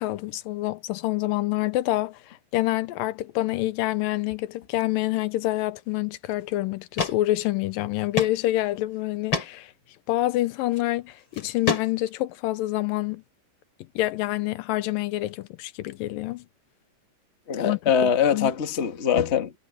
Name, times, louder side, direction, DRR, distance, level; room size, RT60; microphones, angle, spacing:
voice 1, 0.0-9.7 10.1-13.2 14.0-16.4 17.6-18.5, left 16 dB, 90° left, 2.5 m, -27 dB
sound 1, 6.3-6.4 7.0-7.2 7.5-7.6 8.2-8.4 8.7-8.8 9.3-9.5 10.6-10.8 11.3-12.2, left 4 dB, 35° left, 4.1 m, -27 dB
voice 2, 17.5-19.5, left 7 dB, 65° left, 0.6 m, -23 dB
omnidirectional pair, 4.0 m